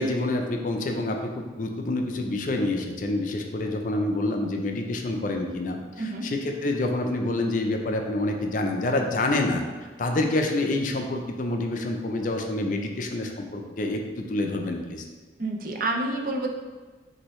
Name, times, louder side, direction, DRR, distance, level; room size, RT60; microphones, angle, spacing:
voice 1, 0.0-9.6 10.0-15.0, left 2 dB, 45° left, 3 dB, 0.4 m, -27 dB
voice 2, 6.0-6.3 15.4-16.5, right 2 dB, 50° right, 1 dB, 0.5 m, -28 dB
6.1 x 2.7 x 3.0 m, 1.4 s
head